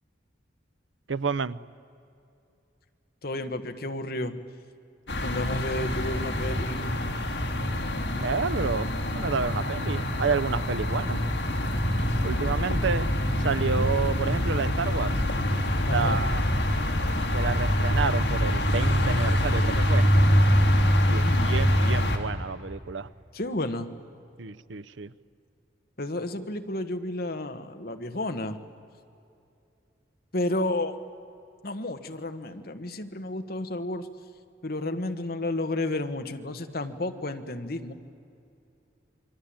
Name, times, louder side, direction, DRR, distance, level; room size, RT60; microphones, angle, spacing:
voice 1, 1.1-1.6 8.1-11.2 12.2-13.1 13.4-15.2 15.8-16.4 17.3-20.1 21.1-23.1 24.4-25.1, right 5 dB, 85° right, 17 dB, 0.7 m, -30 dB
voice 2, 3.2-4.3 5.2-6.8 13.6-13.9 15.9-16.2 21.1-21.5 23.3-23.9 26.0-28.6 30.3-31.0 31.6-34.1 34.6-37.9, left 1 dB, 55° left, 8 dB, 1.5 m, -31 dB
sound 1, 5.1-22.2, equal, 70° left, 3.0 m, -25 dB
28.5 x 23.0 x 8.8 m, 2.6 s
head